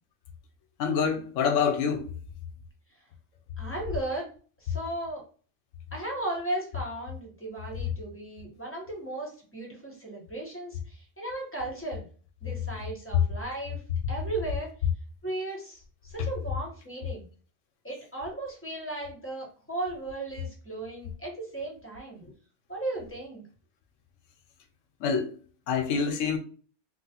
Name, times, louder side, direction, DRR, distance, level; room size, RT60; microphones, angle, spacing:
voice 1, 0.8-2.1 25.0-25.3 25.7-26.4, left 6 dB, 85° left, 1.0 m, -26 dB
voice 2, 3.6-4.3 4.6-5.2 5.9-12.0 12.4-13.8 14.1-14.7 15.2-17.2 17.8-22.3 22.7-23.4, right 2 dB, 10° left, 0.9 m, -36 dB
3.2 x 2.4 x 2.8 m
omnidirectional pair, 1.3 m